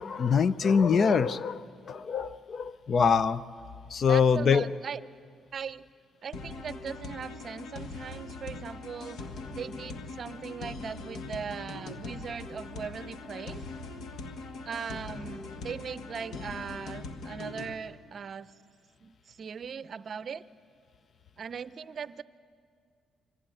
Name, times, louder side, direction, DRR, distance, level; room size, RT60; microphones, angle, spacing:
voice 1, 0.0-3.4 3.9-4.7, left 6 dB, 50° left, 16 dB, 0.6 m, -24 dB
voice 2, 4.1-5.0 5.5-5.9 6.2-9.2 9.5-13.6 14.6-18.5 19.0-20.4 21.4-22.2, right 6 dB, 50° right, 15 dB, 0.6 m, -39 dB
sound 1, 6.3-17.7, left 3 dB, 75° left, 1.5 m, -41 dB
24.0 x 16.0 x 9.1 m, 2.2 s
cardioid pair, 90°, 0 cm